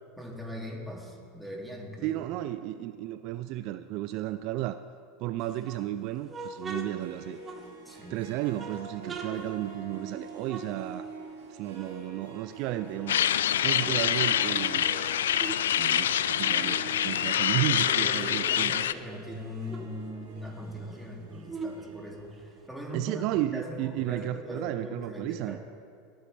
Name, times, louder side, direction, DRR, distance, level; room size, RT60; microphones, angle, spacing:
voice 1, 0.2-2.2 7.8-8.1 17.5-22.3 22.7-23.2 23.5-25.6, equal, 5° right, -2 dB, 2.5 m, -40 dB
voice 2, 2.0-4.8 5.2-7.4 8.1-11.1 11.5-13.2 13.6-14.9 15.8-18.8 22.9-25.6, right 14 dB, 60° right, 12 dB, 0.3 m, -33 dB
sound 1, 5.4-8.1 8.5-11.4 11.7-13.0 13.4-15.7 16.0-18.5 18.9-19.0 19.2-22.7, right 3 dB, 30° right, 1.3 m, -43 dB
Harp, 6.7-23.5, right 4 dB, 90° right, 1.8 m, -47 dB
sound 2, 13.1-18.9, left 10 dB, 85° left, 0.3 m, -26 dB
19.0 x 8.9 x 3.3 m, 2.4 s
hypercardioid pair, 95°, 0 cm